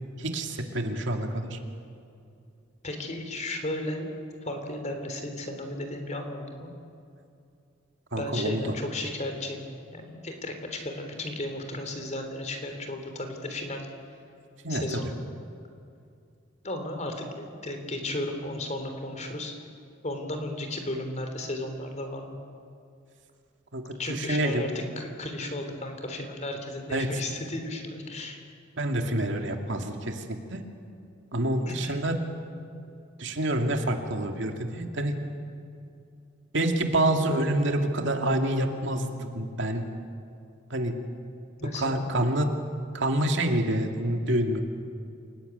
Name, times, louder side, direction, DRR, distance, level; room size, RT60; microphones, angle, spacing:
voice 1, 0.2-1.6 8.1-8.7 14.6-15.1 23.7-24.7 26.9-27.1 28.8-30.6 31.3-32.1 33.2-35.2 36.5-39.9 40.7-41.0 41.7-42.5 42.9-44.6, right 1 dB, 65° right, 4 dB, 2.4 m, -27 dB
voice 2, 2.8-4.1 4.4-6.7 8.2-9.6 9.9-13.9 14.7-15.2 16.6-19.5 20.0-22.4 24.0-28.4 31.7-32.0 41.6-42.1, left 1 dB, 35° left, 5 dB, 3.6 m, -34 dB
28.0 x 18.5 x 9.4 m, 2.5 s
head